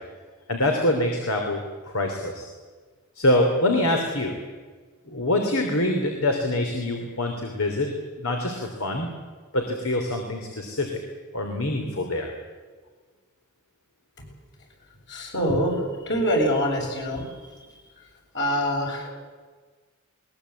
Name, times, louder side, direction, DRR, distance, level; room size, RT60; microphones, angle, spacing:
voice 1, 0.5-2.5 3.2-4.4 5.1-7.9 8.2-9.1 9.5-10.9 11.3-12.3, left 1 dB, 90° left, 3 dB, 3.1 m, -25 dB
voice 2, 15.1-15.7 16.1-17.2 18.3-19.1, equal, 60° left, 0 dB, 7.3 m, -24 dB
21.0 x 21.0 x 8.4 m, 1.4 s
head